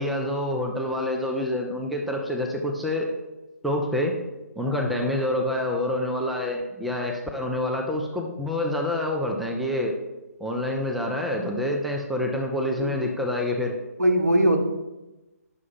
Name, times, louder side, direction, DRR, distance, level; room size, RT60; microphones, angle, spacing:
voice 1, 0.0-3.1 3.6-4.2 4.6-10.0 10.4-13.8, left 1 dB, ahead, 1 dB, 0.3 m, -27 dB
voice 2, 14.0-14.6, right 1 dB, 80° right, 3 dB, 1.2 m, -21 dB
5.8 x 4.7 x 5.3 m, 1.0 s
figure-of-eight pair, 140°, 9 cm